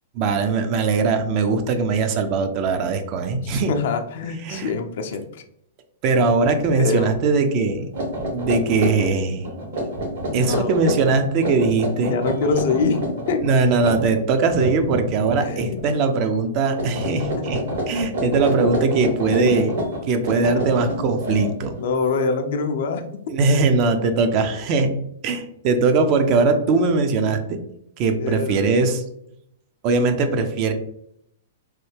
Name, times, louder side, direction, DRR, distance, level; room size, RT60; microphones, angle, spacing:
voice 1, 0.1-3.7 4.4-4.7 6.0-7.9 8.3-9.5 10.3-12.1 13.4-17.6 17.9-19.8 20.1-21.7 23.3-25.0 25.2-27.6 28.0-29.0 29.8-30.7, right 4 dB, 40° right, 7 dB, 0.5 m, -20 dB
voice 2, 3.5-5.4 6.8-7.1 10.3-10.8 12.1-13.4 15.4-15.8 17.2-17.4 19.3-19.7 20.3-20.9 21.8-23.0 28.2-28.8, left 4 dB, 60° left, 6 dB, 0.4 m, -25 dB
sound 1, 6.4-6.7 7.1-7.3 7.8-15.8 16.1-16.5 16.7-21.8, right 1 dB, 70° right, 1.4 m, -28 dB
3.1 x 2.2 x 3.3 m, 0.74 s
hypercardioid pair, 115°, 0 cm